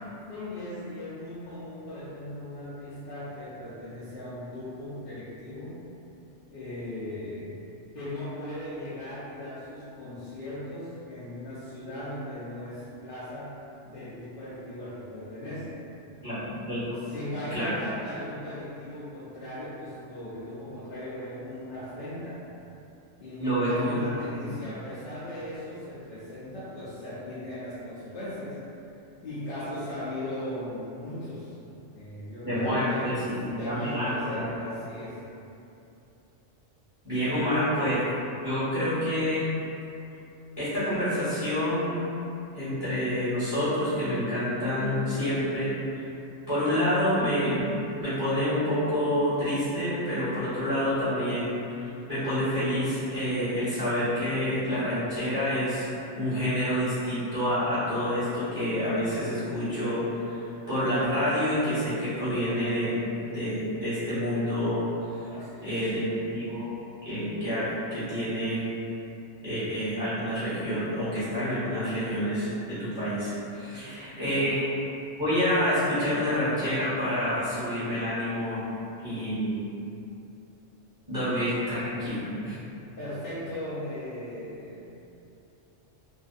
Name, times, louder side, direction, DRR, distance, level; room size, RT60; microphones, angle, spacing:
voice 1, 0.3-5.8 6.5-7.6 7.9-15.8 16.8-22.4 23.2-28.6 29.2-31.6 31.9-33.2 33.6-35.2 37.1-37.6 65.3-65.9 73.7-74.4 83.0-85.0, left 1 dB, 60° left, -12 dB, 0.6 m, -38 dB
voice 2, 16.2-17.0 17.5-17.7 23.4-24.5 32.4-34.6 37.0-38.1 38.4-39.5 40.6-42.0 42.5-46.0 46.5-55.9 56.1-63.0 63.3-64.9 65.6-66.7 67.0-68.6 69.4-74.7 75.2-78.6 79.0-79.6 81.1-82.6, equal, 20° right, -14 dB, 0.8 m, -28 dB
2.5 x 2.3 x 2.4 m, 2.8 s
omnidirectional pair, 1.3 m